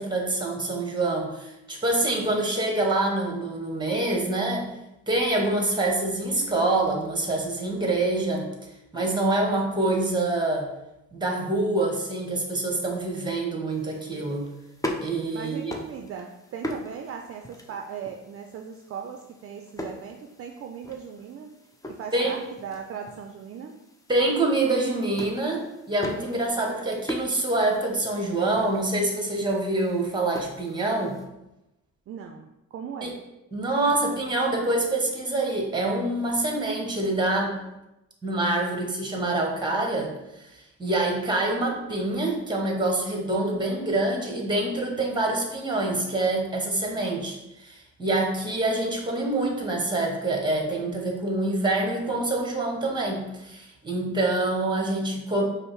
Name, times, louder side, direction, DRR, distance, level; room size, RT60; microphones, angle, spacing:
voice 1, 0.0-4.7 5.1-8.5 8.9-10.7 11.1-14.5 15.0-15.7 22.1-22.3 24.1-31.2 33.0-33.1 33.5-37.6 38.2-40.1 40.4-40.5 40.8-55.4, right 2 dB, 15° right, 1 dB, 1.1 m, -26 dB
sound 1, 13.7-31.3, left 1 dB, 10° left, 0.6 m, -41 dB
voice 2, 15.3-21.6 21.9-23.8 32.1-33.2 33.8-34.2, right 7 dB, 50° right, 3 dB, 0.4 m, -38 dB
5.2 x 2.0 x 4.6 m, 0.94 s
cardioid pair, 90°, 30 cm